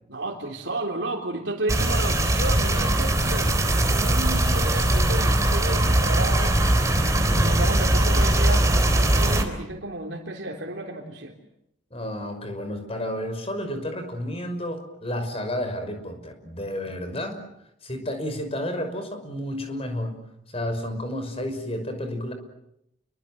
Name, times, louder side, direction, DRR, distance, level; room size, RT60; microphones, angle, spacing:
voice 1, 0.1-6.6 7.3-11.4, right 2 dB, 75° right, 1 dB, 3.5 m, -32 dB
sound 1, 1.7-9.4, right 1 dB, 15° right, 3.8 m, -21 dB
voice 2, 11.9-17.4 17.8-20.2 20.5-22.3, left 1 dB, 30° left, 7 dB, 5.8 m, -31 dB
30.0 x 23.5 x 7.9 m, 0.78 s
head